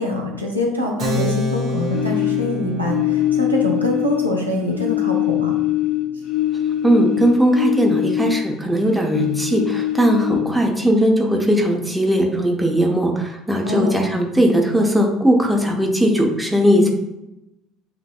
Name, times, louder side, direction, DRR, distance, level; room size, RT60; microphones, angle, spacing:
voice 1, 0.0-5.5 13.6-14.0 16.7-16.9, left 1 dB, 90° right, -1 dB, 0.7 m, -24 dB
Keyboard (musical), 1.0-7.1, left 2 dB, 40° right, 1.4 m, -30 dB
sound 1, 1.9-4.4 4.7-8.7 9.0-10.7, left 13 dB, 50° left, 0.4 m, -22 dB
voice 2, 6.8-16.9, equal, 5° right, 0 dB, 1.0 m, -18 dB
7.7 x 2.6 x 2.3 m, 0.91 s
figure-of-eight pair, 65°, 0 cm